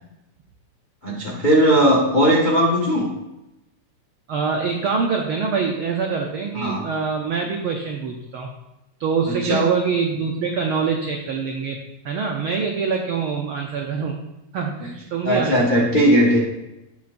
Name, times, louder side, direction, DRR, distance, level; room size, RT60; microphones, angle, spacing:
voice 1, 1.0-3.1 6.5-6.8 9.3-9.7 15.2-16.4, equal, 55° left, -3 dB, 0.5 m, -18 dB
voice 2, 4.3-8.5 9.0-11.8 12.0-14.2 14.5-15.9, right 5 dB, 90° right, 2 dB, 1.1 m, -24 dB
17.0 x 5.6 x 2.6 m, 0.94 s
omnidirectional pair, 3.4 m